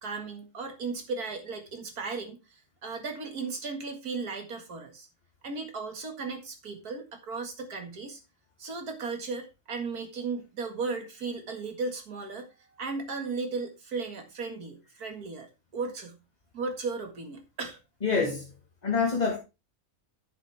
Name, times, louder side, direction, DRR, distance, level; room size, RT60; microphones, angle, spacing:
voice 1, 0.0-5.1 5.4-8.2 8.6-16.2 16.5-17.8, right 4 dB, 80° right, 2.4 m, -36 dB
voice 2, 18.0-18.5 18.8-19.4, left 4 dB, 30° left, 1.6 m, -26 dB
10.5 x 7.4 x 3.4 m
omnidirectional pair, 1.6 m